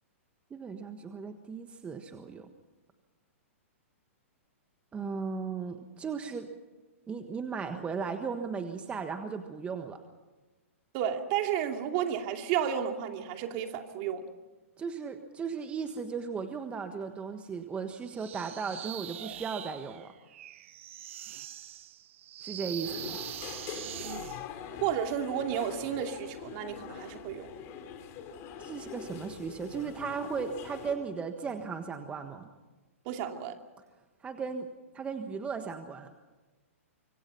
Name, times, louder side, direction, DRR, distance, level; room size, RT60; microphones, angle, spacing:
voice 1, 0.5-2.5 4.9-6.5 7.1-10.0 14.8-20.1 22.4-23.2 28.6-32.5 34.2-34.7 34.9-36.1, right 5 dB, 15° right, 7 dB, 1.4 m, -36 dB
voice 2, 10.9-14.3 24.8-27.5 33.1-33.5, right 9 dB, 45° right, 5 dB, 2.6 m, -32 dB
sound 1, 18.1-24.4, right 12 dB, 60° right, 1.0 m, -43 dB
sound 2, 22.8-30.9, left 7 dB, 35° left, 3.7 m, -43 dB
25.5 x 24.0 x 5.7 m, 1.2 s
hypercardioid pair, 130°, 8 cm